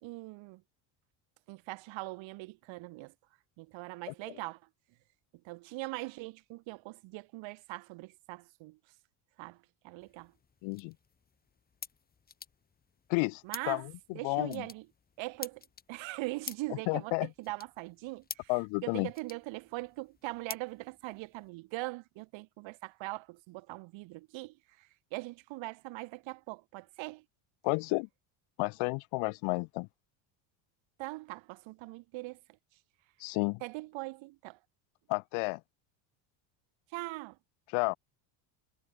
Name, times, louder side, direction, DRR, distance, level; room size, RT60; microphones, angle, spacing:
voice 1, 0.0-0.6 1.5-3.1 3.6-4.6 5.4-8.8 9.4-9.6 9.8-10.3 13.4-14.9 15.2-15.6 15.9-18.5 18.8-27.2 31.0-32.4 33.6-34.6 36.9-37.4, right 21 dB, 65° right, 2.3 m, -41 dB
sound 1, 10.0-21.5, left 6 dB, 20° left, 1.2 m, -50 dB
voice 2, 10.6-10.9 13.1-14.7 16.9-17.3 18.5-19.1 27.6-28.1 28.6-29.9 33.2-33.6 35.1-35.6 37.7-38.0, left 31 dB, 70° left, 0.7 m, -31 dB
cardioid pair, 130°, 49 cm